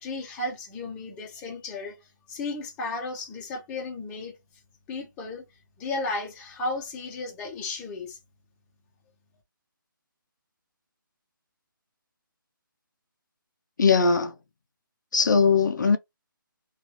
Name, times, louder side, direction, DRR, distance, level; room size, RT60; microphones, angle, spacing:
voice 1, 0.0-2.0 2.3-4.4 4.9-5.4 5.8-8.2, left 2 dB, 10° left, 0.6 m, -34 dB
voice 2, 13.8-14.3 15.1-16.0, left 5 dB, 60° left, 0.4 m, -20 dB
2.9 x 2.3 x 2.9 m
hypercardioid pair, 160°, 12 cm